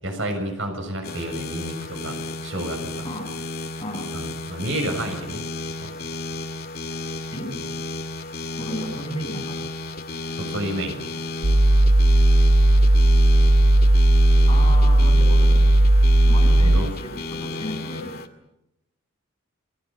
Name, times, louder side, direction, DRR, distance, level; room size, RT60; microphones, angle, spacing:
voice 1, 0.0-3.1 4.1-5.4 5.8-5.9 10.3-11.0 16.6-16.9, right 1 dB, 65° right, 5 dB, 6.6 m, -30 dB
sound 1, 1.0-18.3, left 2 dB, 45° left, 2.1 m, -33 dB
voice 2, 3.0-3.3 3.8-4.1 7.3-7.5 8.6-9.6 14.5-15.7 16.3-18.1, equal, 25° left, 1 dB, 7.2 m, -33 dB
sound 2, 11.4-16.8, right 1 dB, 90° right, 1.8 m, -15 dB
28.0 x 21.5 x 7.4 m, 0.89 s
head